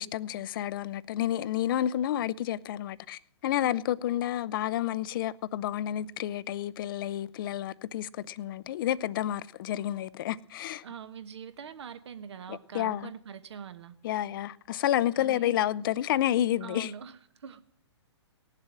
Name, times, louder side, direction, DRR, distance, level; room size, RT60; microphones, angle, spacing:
voice 1, 0.0-10.8 12.5-13.1 14.0-16.9, left 12 dB, 50° left, 0.5 m, -30 dB
voice 2, 10.8-13.9 15.2-15.5 16.6-17.7, right 7 dB, 70° right, 1.2 m, -43 dB
17.5 x 7.4 x 7.5 m
hypercardioid pair, 135°, 15 cm